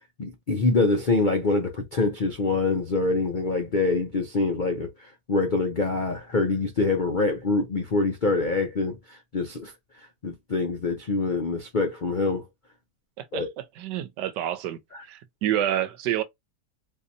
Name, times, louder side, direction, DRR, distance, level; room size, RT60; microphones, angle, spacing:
voice 1, 0.2-9.7 10.0-12.4 13.3-13.5, left 3 dB, 65° left, 0.4 m, -25 dB
voice 2, 13.2-16.2, right 11 dB, 85° right, 1.2 m, -29 dB
3.9 x 2.7 x 2.6 m
omnidirectional pair, 1.8 m